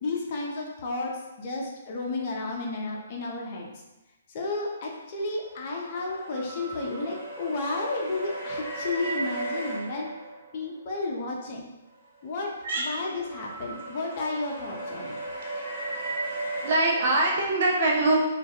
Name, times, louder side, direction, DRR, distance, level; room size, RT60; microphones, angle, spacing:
voice 1, 0.0-3.7 4.3-10.1 10.5-11.7 12.2-15.2, left 3 dB, 40° left, -1 dB, 0.4 m, -32 dB
sound 1, 5.2-10.8 12.2-17.5, right 2 dB, 30° right, 0.8 m, -36 dB
voice 2, 16.6-18.2, right 2 dB, 55° right, -1 dB, 0.6 m, -23 dB
2.2 x 2.2 x 2.8 m, 1.0 s
figure-of-eight pair, 130°, 0 cm